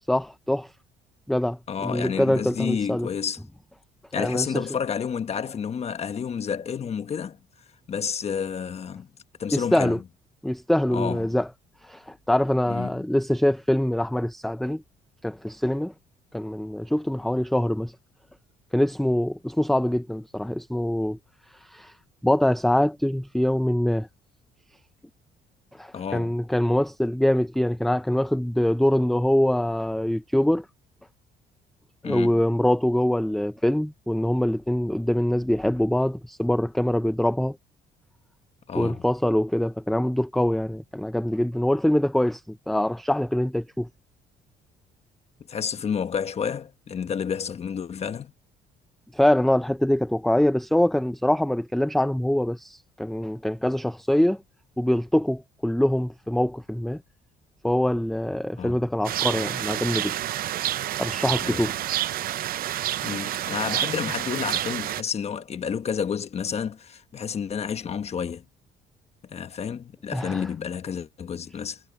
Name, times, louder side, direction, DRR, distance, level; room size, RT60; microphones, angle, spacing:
voice 1, 0.1-0.7 1.3-3.1 4.2-4.6 9.5-10.0 10.4-11.5 11.8-14.8 15.2-15.9 16.3-17.9 18.7-21.2 21.7-21.9 22.2-24.1 25.7-30.6 32.0-37.6 38.7-43.9 49.1-54.4 54.8-57.0 57.6-60.1 61.0-61.8 70.1-70.4, left 1 dB, ahead, 0.6 m, -24 dB
voice 2, 1.7-3.4 4.1-7.4 7.9-9.1 9.4-9.9 10.9-11.3 12.7-13.0 25.9-26.3 32.0-32.4 38.7-39.0 45.5-48.3 58.6-58.9 61.4-61.6 63.0-68.4 69.2-71.8, left 7 dB, 40° left, 1.3 m, -30 dB
sound 1, 59.0-65.0, right 13 dB, 60° right, 0.7 m, -28 dB
cardioid pair, 110°, 17 cm